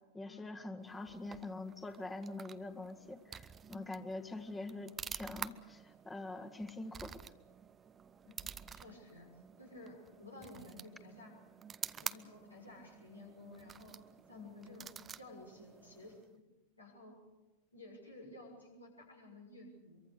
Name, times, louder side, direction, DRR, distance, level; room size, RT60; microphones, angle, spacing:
voice 1, 0.1-7.2, left 2 dB, 10° left, 6 dB, 1.8 m, -44 dB
sound 1, 0.8-16.4, right 7 dB, 20° right, 0.7 m, -49 dB
voice 2, 8.2-9.3 9.6-11.3 12.0-14.0 14.3-16.4 16.8-17.2 17.7-20.0, left 2 dB, 80° left, 0 dB, 6.2 m, -53 dB
24.5 x 23.5 x 6.6 m, 1.1 s
figure-of-eight pair, 90°, 0 cm